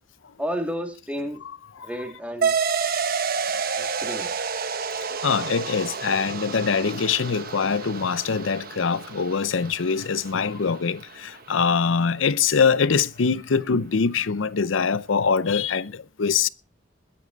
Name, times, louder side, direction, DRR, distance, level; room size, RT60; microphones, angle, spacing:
voice 1, 0.4-1.4 1.8-2.5 3.8-4.3, equal, 5° right, 2.3 m, -31 dB
sound 1, 2.4-11.4, right 6 dB, 50° right, 1.1 m, -30 dB
voice 2, 5.2-16.5, left 5 dB, 85° left, 0.6 m, -23 dB
21.5 x 8.5 x 3.9 m
head